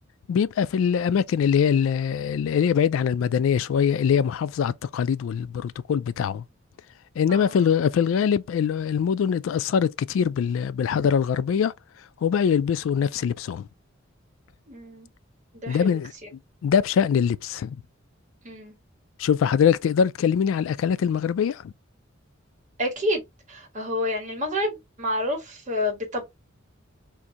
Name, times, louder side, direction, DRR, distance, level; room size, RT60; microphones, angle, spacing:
voice 1, 0.3-6.4 7.2-11.7 12.2-13.7 15.7-16.1 16.6-17.8 19.2-21.7, left 7 dB, 85° left, 0.3 m, -23 dB
voice 2, 14.7-15.1 15.6-16.0 18.4-18.7 22.8-23.2 23.5-26.2, left 1 dB, 40° right, 1.4 m, -29 dB
3.6 x 2.6 x 2.8 m
head